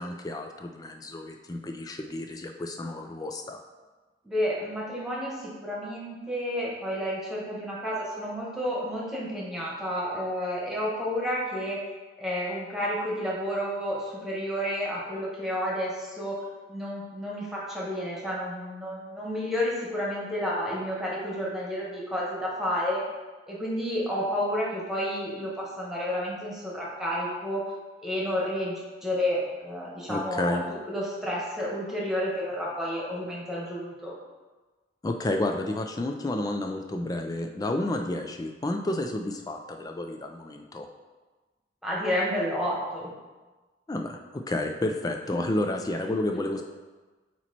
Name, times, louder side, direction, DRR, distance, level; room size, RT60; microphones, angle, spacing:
voice 1, 0.0-3.6 30.1-30.6 35.0-40.9 43.9-46.6, left 1 dB, 20° left, 4 dB, 0.4 m, -31 dB
voice 2, 4.2-11.8 12.2-16.3 16.7-23.0 23.5-27.6 28.0-30.6 30.9-34.1 41.8-43.1, equal, ahead, -5 dB, 1.5 m, -30 dB
8.4 x 3.0 x 4.2 m, 1.3 s
head